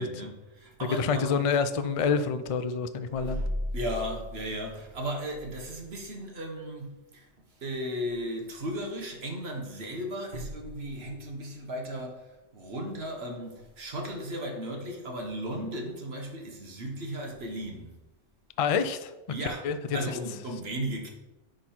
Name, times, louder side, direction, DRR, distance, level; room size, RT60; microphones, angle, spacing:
voice 1, 0.0-1.4 3.1-7.2 7.6-18.0 19.3-19.6 19.9-21.1, equal, 55° right, 1.5 m, -35 dB
voice 2, 0.9-3.4 18.6-19.1 19.6-19.8, left 5 dB, 70° left, 0.3 m, -27 dB
10.5 x 3.8 x 4.4 m
omnidirectional pair, 1.3 m